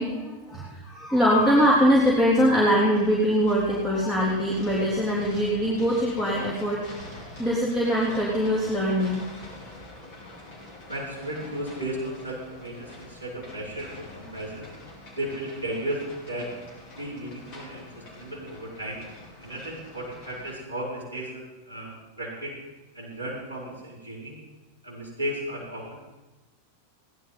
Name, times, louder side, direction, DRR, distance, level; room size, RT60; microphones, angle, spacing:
voice 1, 0.0-9.2, equal, 15° left, -5 dB, 3.3 m, -23 dB
sound 1, 1.4-20.5, left 1 dB, 45° left, 4.6 m, -45 dB
voice 2, 10.9-14.7 15.2-16.5 17.0-19.0 19.4-22.5 22.9-24.4 24.8-26.0, right 1 dB, 85° left, -5 dB, 5.2 m, -35 dB
16.0 x 11.5 x 5.6 m, 1.1 s
figure-of-eight pair, 90°, 0 cm